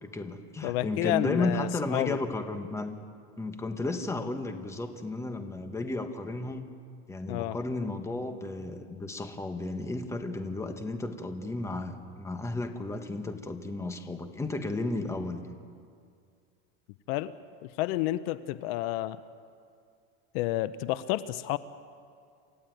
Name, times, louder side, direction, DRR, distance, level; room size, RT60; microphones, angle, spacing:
voice 1, 0.0-3.0 3.4-6.7 7.1-15.5, left 2 dB, 10° left, 6 dB, 1.4 m, -33 dB
voice 2, 0.6-2.2 7.3-7.6 17.1-17.3 17.6-19.2 20.3-21.6, left 15 dB, 70° left, 14 dB, 0.8 m, -30 dB
28.5 x 15.0 x 9.3 m, 2.3 s
cardioid pair, 150°, 31 cm